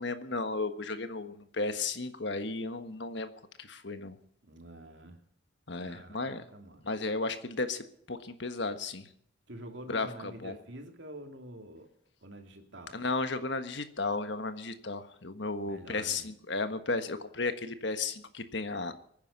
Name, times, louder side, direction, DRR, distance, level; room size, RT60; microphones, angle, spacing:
voice 1, 0.0-3.3 3.6-4.2 5.7-6.4 6.8-9.1 9.9-10.6 12.9-18.9, left 3 dB, 60° left, 9 dB, 1.5 m, -34 dB
voice 2, 4.4-5.2 5.8-6.9 9.5-11.9 12.2-13.0 15.6-16.3, right 1 dB, 65° right, 4 dB, 2.7 m, -47 dB
23.0 x 10.0 x 5.5 m, 0.66 s
head